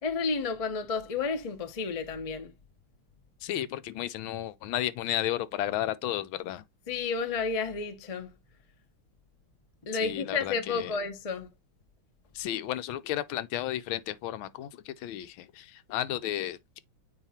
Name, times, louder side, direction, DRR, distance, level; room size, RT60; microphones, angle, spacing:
voice 1, 0.0-2.5 6.9-8.3 9.8-11.5, left 4 dB, 50° left, 0.4 m, -31 dB
voice 2, 3.4-6.6 10.0-10.9 12.3-16.8, left 13 dB, 75° left, 1.3 m, -33 dB
9.0 x 3.0 x 4.3 m
omnidirectional pair, 2.4 m